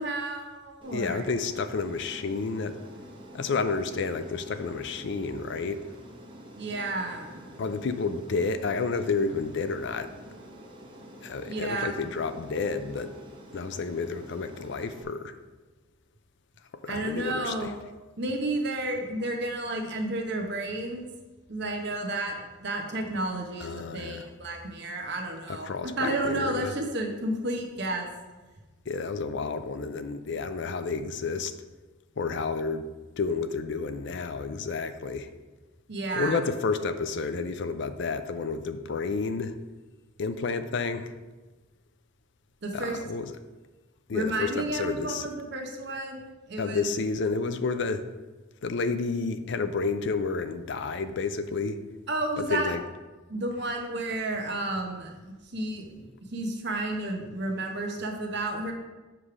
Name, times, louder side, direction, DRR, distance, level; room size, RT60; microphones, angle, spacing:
voice 1, 0.0-1.3 6.6-7.6 11.5-12.0 16.9-17.7 18.2-21.1 21.5-28.1 35.9-36.4 42.6-43.0 44.1-46.8 52.1-52.7 53.3-58.7, right 2 dB, 60° right, 3 dB, 1.0 m, -32 dB
Aircraft, 0.8-15.0, equal, 25° right, 0.9 m, -47 dB
voice 2, 0.9-2.8 3.3-5.8 7.6-10.1 11.2-13.1 13.5-15.3 16.8-17.7 23.6-24.3 25.5-26.7 28.9-31.5 32.2-32.9 33.2-35.3 36.1-39.6 40.2-41.1 42.7-43.3 44.1-45.2 46.6-48.1 48.6-51.8 52.5-52.8, left 4 dB, 60° left, 10 dB, 0.5 m, -30 dB
7.5 x 3.3 x 6.0 m, 1.2 s
head